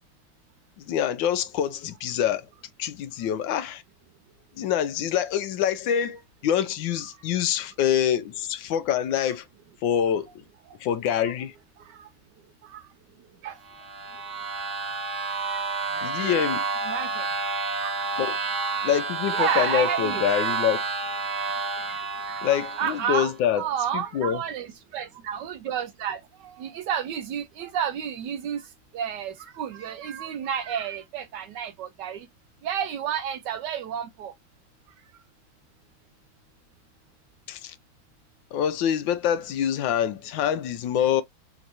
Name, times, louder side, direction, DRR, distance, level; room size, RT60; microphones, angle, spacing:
voice 1, 0.9-2.4 2.8-3.8 4.6-9.4 9.8-10.3 10.8-11.5 16.0-16.6 18.2-18.4 18.8-20.8 22.4-23.6 23.9-24.4 37.5-37.7 38.5-41.2, left 9 dB, 75° left, 1.3 m, -25 dB
sound 1, 13.7-23.3, right 4 dB, 55° right, 1.4 m, -30 dB
voice 2, 15.9-16.5 16.9-17.3 17.8-18.1 18.7-18.9 19.3-20.2 21.9-22.0 22.2-22.4 22.8-28.6 28.9-32.3 32.6-34.3, right 9 dB, 75° right, 1.0 m, -31 dB
4.4 x 3.0 x 2.5 m
omnidirectional pair, 2.2 m